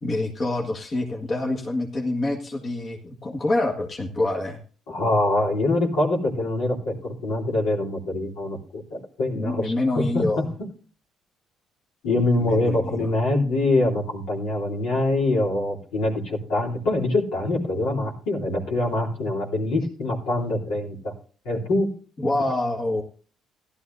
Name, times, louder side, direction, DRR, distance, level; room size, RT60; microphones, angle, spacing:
voice 1, 0.0-4.6 9.3-10.4 12.4-13.1 22.2-23.0, left 2 dB, 40° left, 0 dB, 1.8 m, -26 dB
voice 2, 4.9-10.5 12.0-21.1 21.4-21.9, left 2 dB, 75° left, -3 dB, 3.3 m, -24 dB
15.5 x 12.0 x 2.7 m, 0.40 s
hypercardioid pair, 55°, 0 cm